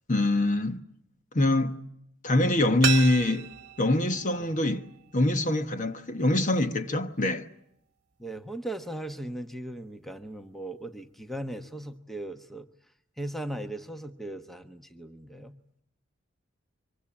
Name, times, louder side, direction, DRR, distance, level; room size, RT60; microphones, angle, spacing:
voice 1, 0.1-0.8 1.3-1.8 2.2-3.5 3.8-4.9 5.1-7.5, left 1 dB, 40° left, 1.2 m, -24 dB
sound 1, 2.8-5.6 5.9-6.0, right 8 dB, 55° right, 1.2 m, -34 dB
voice 2, 8.2-12.7 13.2-15.5, right 1 dB, ahead, 1.1 m, -38 dB
25.0 x 23.5 x 8.8 m
head